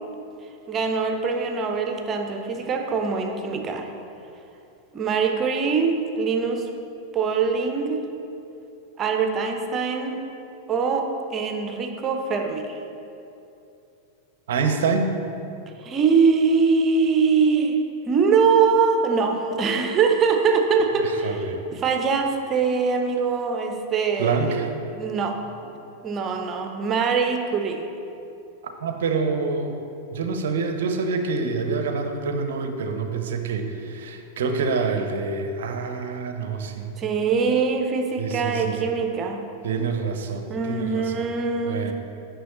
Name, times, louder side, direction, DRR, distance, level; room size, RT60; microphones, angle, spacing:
voice 1, 0.7-3.9 4.9-6.7 7.1-8.0 9.0-10.2 10.7-12.8 15.8-17.8 18.1-24.6 24.9-25.4 26.0-27.9 37.0-39.5 40.5-41.9, right 5 dB, 25° right, 4 dB, 0.7 m, -23 dB
voice 2, 14.5-15.1 21.2-21.6 24.2-24.7 28.6-29.7 30.1-37.0 38.2-38.8 39.6-41.2 41.6-41.9, right 4 dB, 60° right, 6 dB, 0.6 m, -26 dB
9.2 x 6.1 x 3.1 m, 2.7 s
figure-of-eight pair, 90°, 0 cm